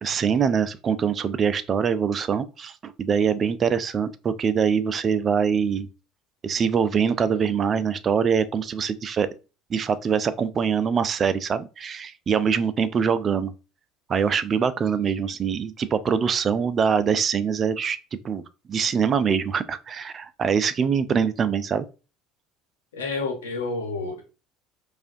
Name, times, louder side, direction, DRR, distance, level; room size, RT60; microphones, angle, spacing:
voice 1, 0.0-5.9 6.4-9.3 9.7-13.5 14.1-18.0 18.2-18.4 18.7-21.9, right 6 dB, 40° right, 0.4 m, -23 dB
voice 2, 22.9-24.2, left 3 dB, 85° left, 1.0 m, -29 dB
4.8 x 2.5 x 2.6 m
hypercardioid pair, 70°, 0 cm